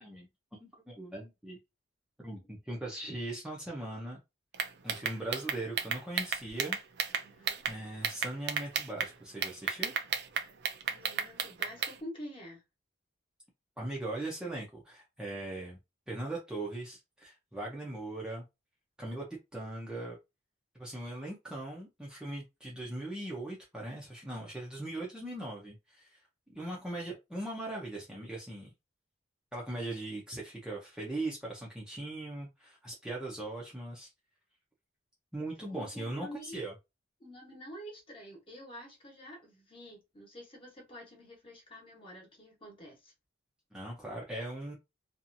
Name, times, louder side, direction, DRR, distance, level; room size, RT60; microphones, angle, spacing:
voice 1, 0.0-1.6 2.2-4.2 4.8-6.8 7.4-9.9 13.8-15.8 16.1-18.4 19.0-19.2 19.5-20.2 20.8-26.2 26.5-28.7 29.5-34.1 35.3-36.7 43.7-44.8, right 2 dB, 5° right, 0.6 m, -40 dB
sound 1, 4.5-7.7 8.0-9.1 9.4-11.9, right 7 dB, 55° right, 0.4 m, -32 dB
voice 2, 7.2-7.6 10.9-12.6 35.7-36.6 37.2-43.1, equal, 25° left, 1.1 m, -48 dB
2.8 x 2.4 x 2.5 m
head